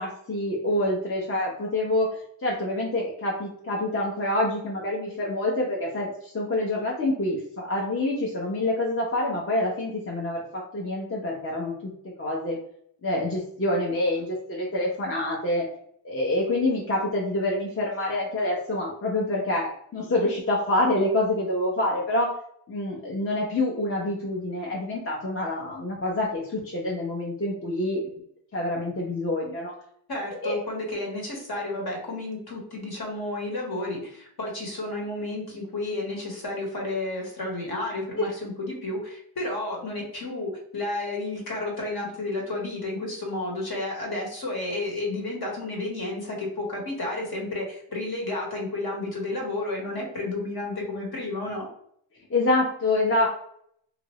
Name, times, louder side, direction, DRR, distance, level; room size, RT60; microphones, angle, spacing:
voice 1, 0.0-2.1 2.4-11.7 12.2-12.6 13.0-15.7 16.0-22.3 22.7-28.1 28.5-29.7 30.4-30.6 38.2-38.3 52.3-53.3, left 1 dB, 30° left, -3 dB, 0.8 m, -26 dB
voice 2, 30.1-51.7, left 2 dB, 50° left, -1 dB, 1.3 m, -31 dB
2.8 x 2.5 x 3.0 m, 0.66 s
cardioid pair, 60°, 48 cm